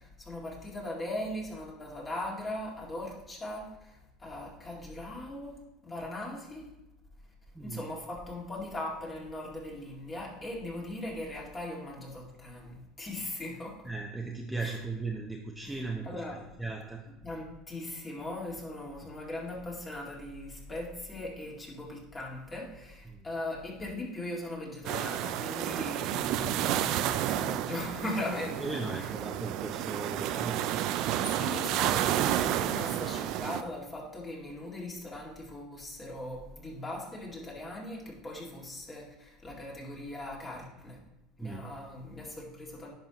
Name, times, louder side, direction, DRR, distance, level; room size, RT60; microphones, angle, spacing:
voice 1, 0.0-6.7 7.6-13.8 14.6-14.8 15.6-16.4 17.2-28.6 28.9-29.1 31.2-41.0 41.4-42.9, left 1 dB, 25° left, -3 dB, 2.1 m, -39 dB
voice 2, 13.8-17.0 19.0-19.1 23.1-23.3 26.4-26.6 28.6-30.6 41.4-41.7, right 3 dB, 5° right, 0 dB, 0.7 m, -37 dB
sound 1, 24.8-33.6, right 12 dB, 60° right, 0.4 m, -31 dB
10.5 x 5.5 x 3.0 m, 0.94 s
supercardioid pair, 120°, 0 cm